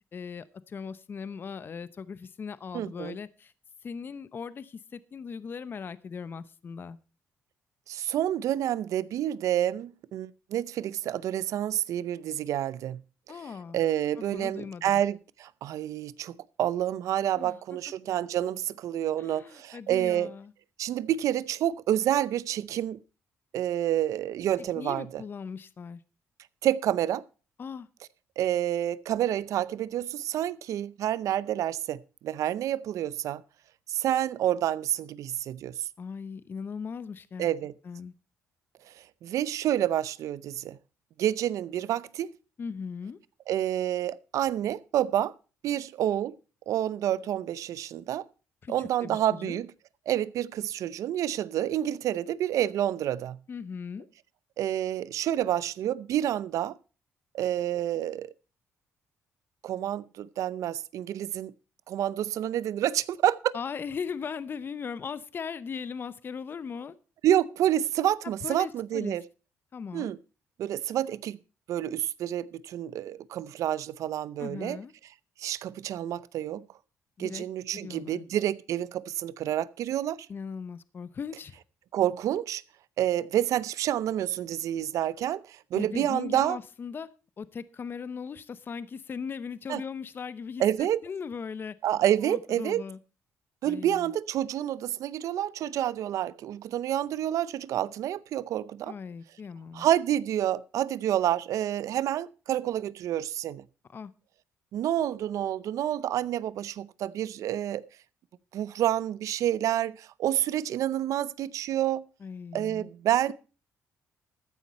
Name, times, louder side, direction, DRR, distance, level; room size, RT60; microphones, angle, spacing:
voice 1, 0.1-3.5 3.8-7.0 13.3-13.8 14.3-15.0 17.3-17.6 19.2-20.5 24.6-26.0 27.6-27.9 36.0-37.5 37.8-38.1 42.6-43.2 48.6-49.6 53.5-54.1 63.5-66.9 68.4-69.2 69.7-70.1 74.4-74.9 77.2-77.4 77.7-78.3 80.3-81.6 85.7-87.1 87.4-91.7 92.2-93.0 93.6-94.1 98.9-99.9 103.9-104.1 112.2-112.9, left 6 dB, 40° left, 0.7 m, -38 dB
voice 2, 2.7-3.2 7.9-13.0 13.7-20.3 20.8-23.0 23.5-25.2 26.6-27.2 28.4-33.4 33.9-35.9 37.4-37.7 39.0-40.8 41.2-42.3 43.5-45.3 45.6-46.3 46.7-48.2 48.7-49.7 50.1-53.4 54.6-56.7 57.3-58.3 59.6-61.5 61.9-63.5 67.2-69.2 69.9-70.2 70.6-71.4 71.7-74.8 75.4-76.6 77.2-80.3 81.9-82.6 83.0-86.6 89.7-89.8 90.6-91.0 91.8-92.8 93.6-98.9 99.7-103.6 104.7-107.8 108.5-112.0 112.5-113.3, right 11 dB, 75° right, 0.6 m, -28 dB
14.0 x 9.7 x 4.2 m
cardioid pair, 105°, 6 cm